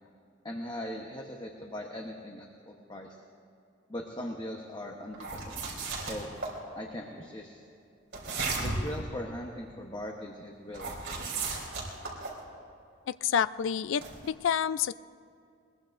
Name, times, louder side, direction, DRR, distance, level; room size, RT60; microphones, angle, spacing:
voice 1, 0.4-3.2 3.9-5.6 6.1-6.3 6.7-7.6 8.6-10.9, left 1 dB, 20° left, 1 dB, 1.0 m, -40 dB
sound 1, 5.1-6.5 8.1-9.0 10.7-12.4 14.0-14.3, right 3 dB, 65° right, 3.7 m, -34 dB
voice 2, 13.1-14.9, left 8 dB, 70° left, 16 dB, 0.3 m, -29 dB
21.5 x 21.5 x 2.6 m, 2.5 s
head